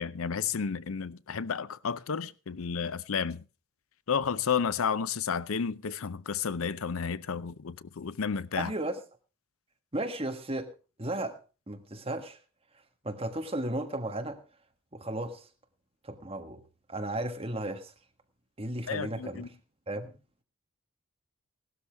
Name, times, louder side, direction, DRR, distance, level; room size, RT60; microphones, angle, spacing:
voice 1, 0.0-3.4 4.1-8.7 18.9-19.5, left 6 dB, 80° left, 0.6 m, -32 dB
voice 2, 8.6-9.0 9.9-10.7 11.0-11.4 11.7-12.4 13.0-14.4 14.9-15.5 16.0-16.6 16.9-17.9 18.6-19.5 19.9-20.2, right 1 dB, 25° right, 1.4 m, -34 dB
17.0 x 12.5 x 3.5 m
head